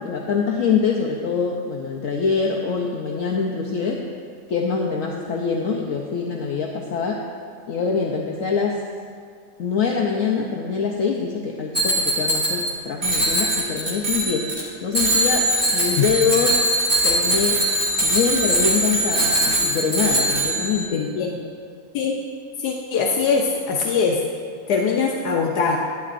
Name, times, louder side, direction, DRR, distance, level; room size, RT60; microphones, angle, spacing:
voice 1, 0.0-4.0 4.5-7.2 7.7-8.8 9.6-14.5 14.8-16.6 17.0-17.6 18.0-21.0, left 5 dB, 65° left, 0 dB, 0.9 m, -24 dB
Bicycle bell, 11.7-12.7 13.0-14.6 14.9-20.8, right 1 dB, 35° right, 2.0 m, -21 dB
voice 2, 20.9-21.5 21.9-22.2 22.6-24.3 24.7-25.8, left 5 dB, 80° left, 0 dB, 1.2 m, -22 dB
11.5 x 10.0 x 2.5 m, 2.2 s
omnidirectional pair, 1.7 m